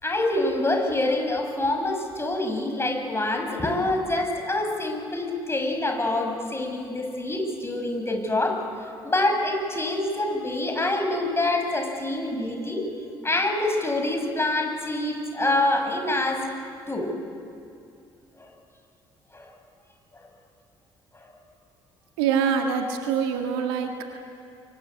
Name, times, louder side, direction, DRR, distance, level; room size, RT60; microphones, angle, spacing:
voice 1, 0.0-8.6 9.0-12.8 13.2-16.5 16.9-17.1 18.4-18.5 19.3-19.4 20.1-20.2 21.1-21.2, left 2 dB, 20° left, 3 dB, 6.3 m, -26 dB
voice 2, 22.2-24.1, right 7 dB, 75° right, 4 dB, 1.8 m, -25 dB
24.0 x 23.5 x 9.5 m, 2.5 s
figure-of-eight pair, 45°, 13 cm